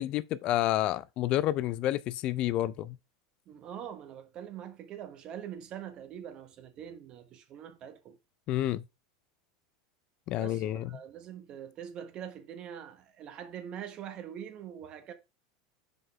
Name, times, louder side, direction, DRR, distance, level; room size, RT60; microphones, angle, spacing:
voice 1, 0.0-3.0 8.5-8.8 10.3-10.9, left 14 dB, 50° left, 0.4 m, -29 dB
voice 2, 3.5-8.2 10.3-15.1, right 9 dB, 45° right, 1.1 m, -43 dB
5.1 x 4.0 x 4.7 m
hypercardioid pair, 105°, 2 cm